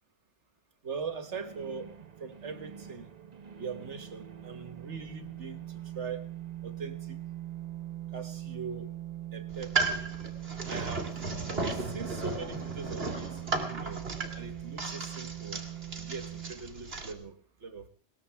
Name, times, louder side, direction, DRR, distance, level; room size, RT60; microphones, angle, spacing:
voice 1, 0.8-1.9 2.2-3.1 3.6-6.3 6.6-7.2 8.1-8.9 9.3-10.1 10.7-11.1 11.7-14.1 14.3-15.6 16.0-17.9, right 5 dB, 85° right, 1.8 m, -41 dB
sound 1, 0.9-16.5, right 12 dB, 40° right, 1.0 m, -42 dB
sound 2, 9.5-17.1, right 3 dB, 60° right, 2.3 m, -35 dB
21.0 x 19.0 x 3.5 m
omnidirectional pair, 1.2 m